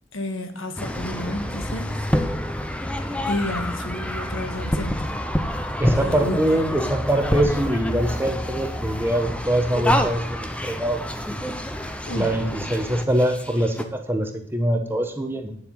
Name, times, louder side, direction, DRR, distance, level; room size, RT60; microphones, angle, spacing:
voice 1, 0.1-2.1 3.0-5.1 6.0-6.9 12.1-12.3, left 1 dB, 85° left, 6 dB, 1.5 m, -31 dB
sound 1, 0.8-13.8, equal, 5° left, 0.6 m, -28 dB
voice 2, 5.8-11.0 11.3-11.4 12.1-15.6, right 1 dB, 10° right, 5 dB, 0.9 m, -23 dB
9.1 x 7.4 x 5.3 m, 0.67 s
head